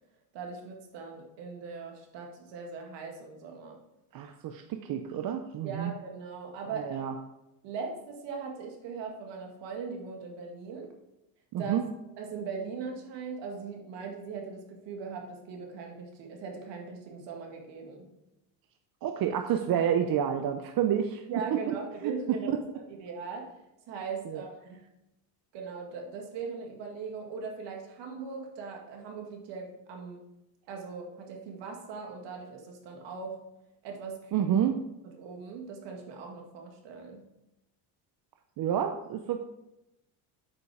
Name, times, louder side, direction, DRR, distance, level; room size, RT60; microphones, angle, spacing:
voice 1, 0.3-3.8 5.6-7.0 7.6-10.9 11.6-11.8 12.2-18.1 21.3-22.6 22.9-23.6 23.9-24.8 25.5-30.2 30.7-33.4 33.8-34.5 35.2-37.2, right 5 dB, 70° right, 2 dB, 2.1 m, -40 dB
voice 2, 4.1-5.9 6.8-7.1 11.5-11.8 19.0-21.2 21.5-21.8 24.3-24.4 34.3-34.8 38.6-39.4, right 9 dB, 50° right, 5 dB, 0.7 m, -29 dB
8.5 x 5.4 x 4.9 m, 0.90 s
cardioid pair, 100°, 44 cm